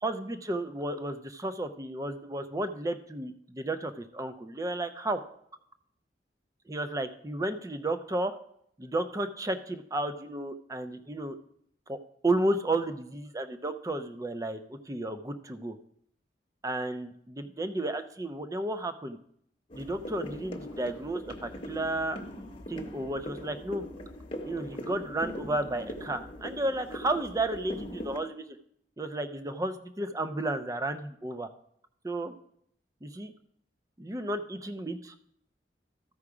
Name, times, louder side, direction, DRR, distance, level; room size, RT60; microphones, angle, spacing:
voice 1, 0.0-5.2 6.7-8.3 8.8-11.4 11.9-12.0 12.2-15.8 16.6-19.2 19.7-22.2 22.7-23.8 24.4-28.4 29.0-31.5 32.0-32.3 33.0-33.3 34.0-35.1, right 2 dB, 20° right, 10 dB, 0.5 m, -32 dB
sound 1, 19.7-28.2, equal, 35° left, 1.0 m, -41 dB
13.5 x 4.8 x 4.9 m, 0.70 s
head